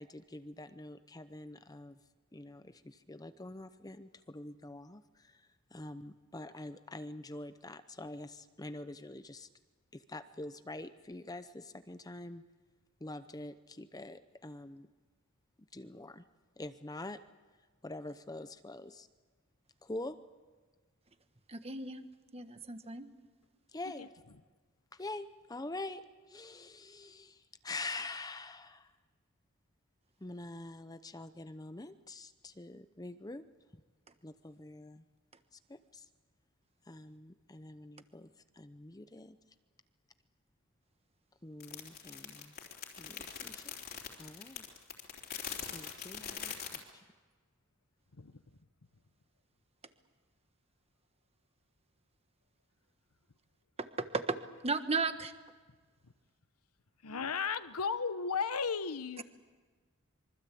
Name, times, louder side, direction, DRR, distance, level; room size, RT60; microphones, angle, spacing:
voice 1, 0.0-2.0 2.3-9.5 9.9-12.4 13.0-14.9 15.7-16.2 16.6-17.2 17.8-19.1 19.8-20.2 23.7-24.1 24.9-26.0 26.3-28.9 30.2-33.4 34.2-35.0 35.7-36.0 36.9-38.3 38.5-39.4 41.4-42.5 43.0-43.7 44.2-44.6 45.7-47.0, left 2 dB, 15° left, 11 dB, 0.7 m, -45 dB
voice 2, 21.5-22.0 22.3-23.1 53.8-54.4 54.6-55.3, right 4 dB, 30° right, 9 dB, 1.4 m, -35 dB
sound 1, 41.6-46.8, left 7 dB, 45° left, 3.4 m, -43 dB
voice 3, 57.0-59.2, left 5 dB, 90° left, 13 dB, 1.1 m, -35 dB
26.0 x 24.0 x 8.5 m, 1.4 s
head